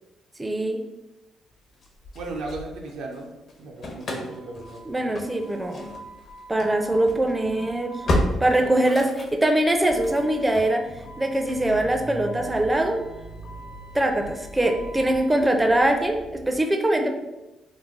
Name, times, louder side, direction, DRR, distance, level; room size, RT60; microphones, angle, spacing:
voice 1, 0.4-0.8 4.9-5.9 6.5-8.0 8.4-10.9 11.2-13.0 13.9-17.1, right 1 dB, 15° right, 4 dB, 0.4 m, -22 dB
Engine starting / Slam, 1.8-3.2 3.5-16.5, left 1 dB, 60° left, 0.6 m, -34 dB
voice 2, 2.1-3.3 3.6-5.1 8.6-8.7, right 3 dB, 85° right, 1 dB, 0.5 m, -36 dB
3.1 x 2.1 x 3.5 m, 1.0 s
cardioid pair, 90°, 0 cm